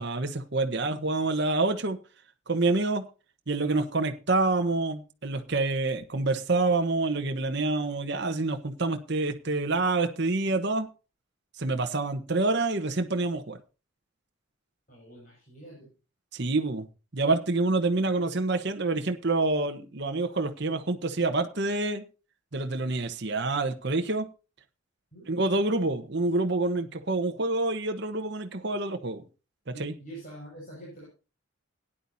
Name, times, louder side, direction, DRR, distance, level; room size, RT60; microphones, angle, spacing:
voice 1, 0.0-2.0 2.5-3.0 3.5-10.9 11.6-13.6 16.3-16.9 17.1-22.0 22.5-24.3 25.3-29.2 29.8-29.9, right 3 dB, 55° right, 6 dB, 1.1 m, -27 dB
voice 2, 14.9-15.9 25.1-25.3 29.7-31.0, right 1 dB, 40° left, -5 dB, 6.0 m, -45 dB
17.0 x 10.0 x 2.7 m, 0.32 s
head